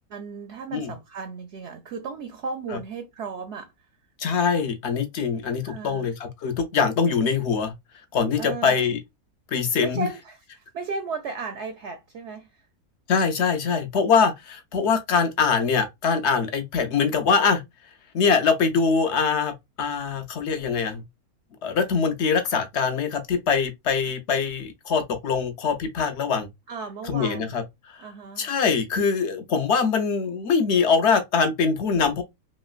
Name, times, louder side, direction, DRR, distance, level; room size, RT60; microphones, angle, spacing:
voice 1, 0.1-3.7 5.6-6.1 8.3-8.9 9.8-12.6 26.7-27.5 28.0-28.5, right 4 dB, 65° right, 0.7 m, -35 dB
voice 2, 4.2-7.7 8.1-9.0 9.5-10.1 13.1-17.6 18.1-21.0 21.6-26.5 27.0-28.0 28.4-32.2, left 5 dB, 60° left, 0.8 m, -23 dB
3.1 x 3.0 x 2.3 m
omnidirectional pair, 1.6 m